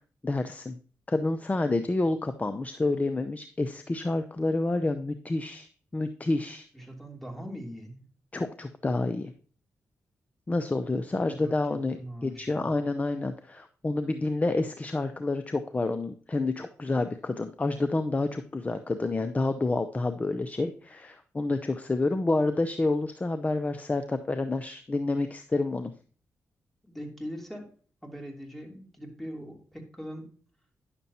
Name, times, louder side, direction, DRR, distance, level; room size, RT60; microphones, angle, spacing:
voice 1, 0.2-0.8 1.1-6.7 8.3-9.3 10.5-25.9, left 2 dB, 25° left, 9 dB, 0.6 m, -29 dB
voice 2, 6.7-8.1 11.2-11.6 12.0-12.7 26.9-27.7 28.0-30.3, equal, 5° left, 1 dB, 3.0 m, -41 dB
10.5 x 6.8 x 2.8 m, 0.42 s
cardioid pair, 60°, 6 cm